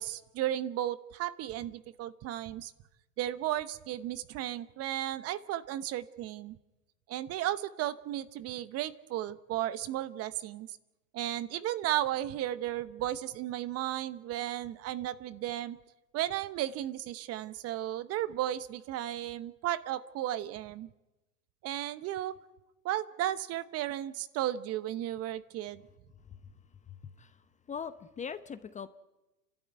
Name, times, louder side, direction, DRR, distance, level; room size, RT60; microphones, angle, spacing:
voice 1, 0.0-2.7 3.2-6.6 7.1-10.8 11.1-15.8 16.1-20.9 21.6-22.4 22.8-25.8, right 13 dB, 30° right, 15 dB, 0.9 m, -34 dB
voice 2, 26.9-28.9, left 7 dB, 15° left, 12 dB, 0.8 m, -42 dB
29.5 x 12.5 x 9.4 m, 1.0 s
hypercardioid pair, 105°, 48 cm